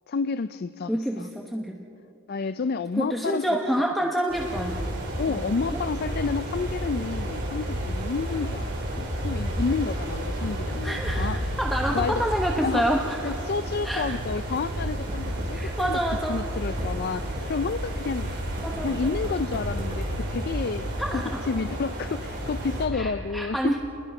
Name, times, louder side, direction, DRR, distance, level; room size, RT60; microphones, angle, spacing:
voice 1, 0.1-1.3 2.3-3.5 5.2-11.5 11.9-12.3 12.6-12.9 13.2-16.0 16.3-18.3 18.8-23.8, left 4 dB, 50° left, 13 dB, 0.4 m, -30 dB
voice 2, 0.9-1.8 3.0-4.8 5.3-5.4 5.7-5.8 10.8-13.4 13.8-14.2 15.5-16.4 18.6-19.2 21.0-21.4 22.9-23.8, equal, ahead, 0 dB, 1.0 m, -28 dB
sound 1, 4.3-22.9, right 1 dB, 55° right, 5.0 m, -31 dB
Typing, 14.7-16.2 16.5-20.5, equal, 25° right, 5.3 m, -43 dB
29.0 x 21.5 x 5.5 m, 2.8 s
head